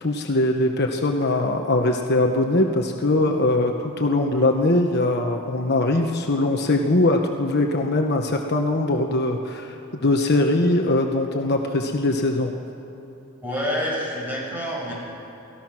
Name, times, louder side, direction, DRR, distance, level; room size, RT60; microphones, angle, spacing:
voice 1, 0.0-9.8 10.0-12.5, left 2 dB, 50° left, 2 dB, 1.2 m, -21 dB
voice 2, 13.4-14.9, equal, 10° right, -5 dB, 6.4 m, -27 dB
28.5 x 18.5 x 6.1 m, 3.0 s
head